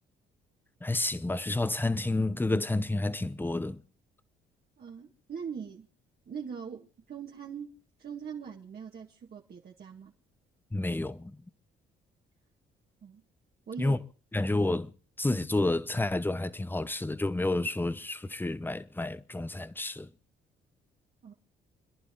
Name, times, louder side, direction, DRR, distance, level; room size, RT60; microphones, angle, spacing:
voice 1, 0.8-3.8 10.7-11.4 13.8-14.0 14.3-14.9 15.2-20.1, left 2 dB, 10° left, 0.9 m, -30 dB
voice 2, 4.8-5.9 6.3-10.1 13.0-13.2 13.7-14.0 21.2-21.3, right 7 dB, 50° right, 2.0 m, -42 dB
29.0 x 11.0 x 3.8 m
cardioid pair, 90°, 20 cm